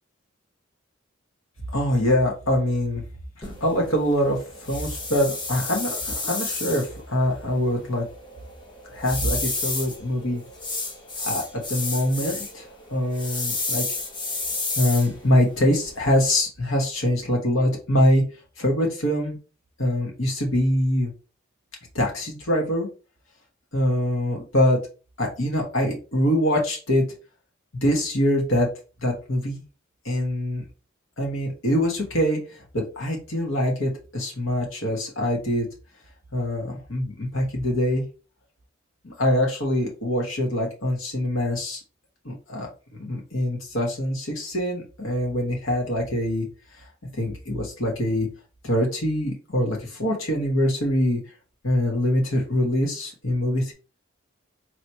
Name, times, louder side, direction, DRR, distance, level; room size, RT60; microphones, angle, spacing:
voice 1, 1.7-3.0 3.4-8.1 8.9-10.4 11.2-13.8 14.8-18.2 18.6-19.4 19.8-21.1 21.9-22.9 23.7-24.8 25.2-27.0 27.8-28.7 29.0-29.6 30.0-30.6 31.2-35.7 36.3-38.0 39.0-41.8 42.2-42.7 43.0-46.5 46.8-46.9 47.1-48.3 48.6-51.2 51.6-53.7, left 1 dB, 80° left, -1 dB, 1.4 m, -24 dB
sound 1, 3.4-16.4, left 3 dB, 25° left, 0.8 m, -32 dB
4.4 x 3.1 x 2.8 m, 0.33 s
head